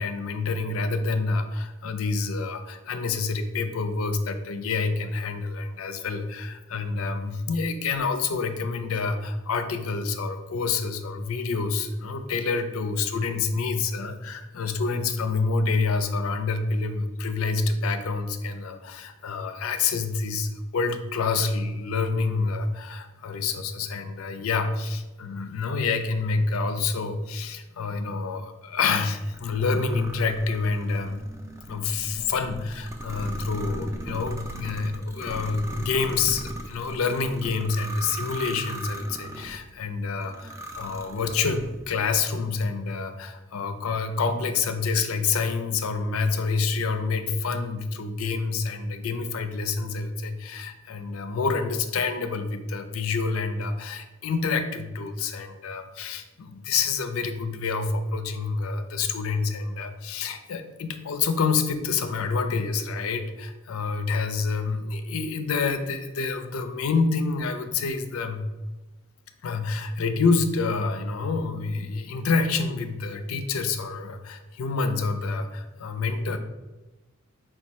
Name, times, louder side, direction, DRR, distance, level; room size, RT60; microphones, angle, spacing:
voice 1, 0.0-31.2 31.7-68.4 69.4-76.4, left 4 dB, 90° left, 8 dB, 0.4 m, -27 dB
sound 1, 29.3-39.6 40.2-41.8, right 1 dB, 15° right, 0.4 m, -38 dB
4.5 x 2.3 x 4.1 m, 1.1 s
head